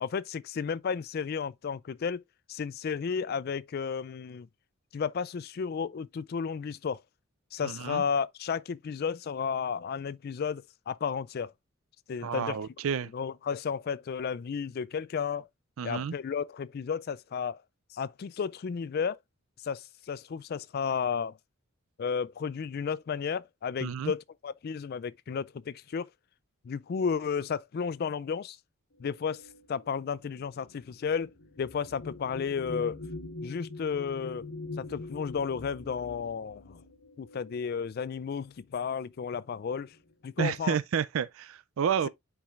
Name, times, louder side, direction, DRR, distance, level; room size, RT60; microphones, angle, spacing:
voice 1, 0.0-2.2 2.5-4.5 4.9-7.0 7.5-11.5 12.1-12.6 13.1-15.5 15.8-17.6 17.9-19.2 19.6-21.4 22.0-26.1 26.6-28.6 29.0-29.4 29.7-31.3 31.6-33.0 33.4-34.4 34.8-36.8 37.2-40.0 40.2-40.8, left 6 dB, 45° left, 0.3 m, -33 dB
voice 2, 7.6-8.0 12.2-13.1 15.8-16.1 23.8-24.1 40.4-42.1, right 7 dB, 75° right, 0.4 m, -30 dB
sound 1, 29.2-38.1 39.0-39.2 39.5-40.1, left 3 dB, 75° left, 1.2 m, -44 dB
10.0 x 4.8 x 2.4 m
head